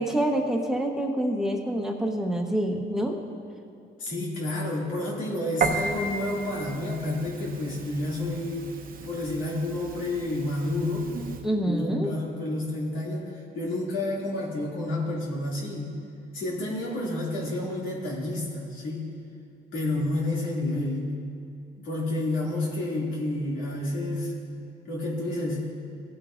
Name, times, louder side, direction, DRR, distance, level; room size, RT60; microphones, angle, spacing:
voice 1, 0.0-3.2 11.4-12.1, right 1 dB, ahead, 1 dB, 1.1 m, -26 dB
voice 2, 4.0-8.7 9.0-11.1 11.5-15.9 16.3-19.1 19.7-21.2 21.8-24.3 24.9-25.7, left 1 dB, 85° left, -4 dB, 2.5 m, -30 dB
Piano, 5.6-11.4, right 4 dB, 45° right, 0.9 m, -34 dB
16.5 x 8.3 x 2.6 m, 2.6 s
cardioid pair, 90°, 20 cm